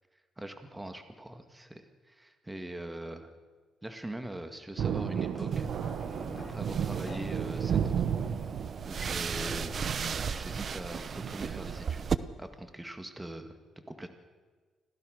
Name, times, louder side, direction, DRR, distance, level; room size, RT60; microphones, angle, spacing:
voice 1, 0.4-3.3 3.8-6.0 6.3-8.1 8.8-9.8 10.3-13.5 14.0-14.1, right 1 dB, 10° right, 7 dB, 2.0 m, -42 dB
Thunder, 4.8-11.8, right 8 dB, 65° right, 1.2 m, -34 dB
sound 1, 5.3-12.1 12.7-12.8, left 3 dB, 25° left, 7.6 m, -49 dB
sound 2, 5.5-12.2, right 6 dB, 45° right, 0.9 m, -36 dB
26.0 x 16.5 x 6.6 m, 1.4 s
cardioid pair, 90°, 0 cm